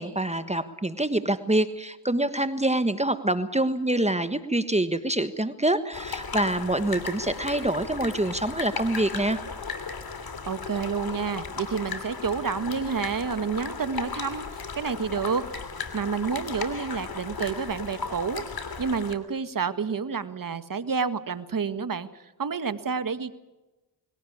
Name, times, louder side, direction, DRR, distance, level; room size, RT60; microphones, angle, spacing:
voice 1, 0.0-9.4, right 1 dB, 15° right, 11 dB, 1.4 m, -26 dB
sound 1, 5.9-19.1, left 5 dB, 50° left, 2.8 m, -36 dB
voice 2, 10.5-15.4 15.9-18.4 18.8-23.3, right 5 dB, 45° right, 12 dB, 1.6 m, -29 dB
20.5 x 17.5 x 8.7 m, 1.0 s
supercardioid pair, 50°, 46 cm